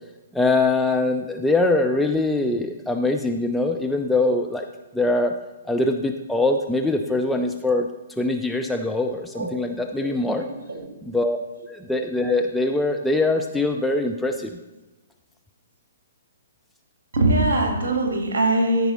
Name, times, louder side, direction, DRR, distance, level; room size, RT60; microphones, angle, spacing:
voice 1, 0.3-4.7 4.9-5.3 5.7-7.9 8.2-10.5 11.0-11.4 11.7-14.5, left 2 dB, 5° left, 2 dB, 0.4 m, -23 dB
voice 2, 9.3-9.7 9.9-10.1 10.5-10.8 17.1-18.9, right 2 dB, 55° right, 2 dB, 2.4 m, -22 dB
13.5 x 5.3 x 4.3 m, 1.1 s
figure-of-eight pair, 120°, 0 cm